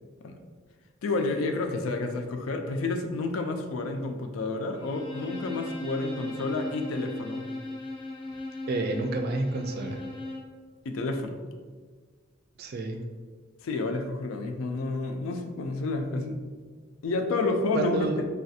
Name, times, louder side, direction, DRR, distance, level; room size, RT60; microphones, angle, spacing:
voice 1, 1.0-7.5 10.9-11.4 13.6-16.4 17.0-18.2, left 3 dB, 90° left, 5 dB, 0.4 m, -30 dB
Bowed string instrument, 4.8-10.6, left 2 dB, 25° left, 0.4 m, -37 dB
voice 2, 8.7-10.0 12.6-13.0 16.1-16.3 17.7-18.2, right 2 dB, 50° right, 5 dB, 0.3 m, -30 dB
3.2 x 2.3 x 2.7 m, 1.5 s
head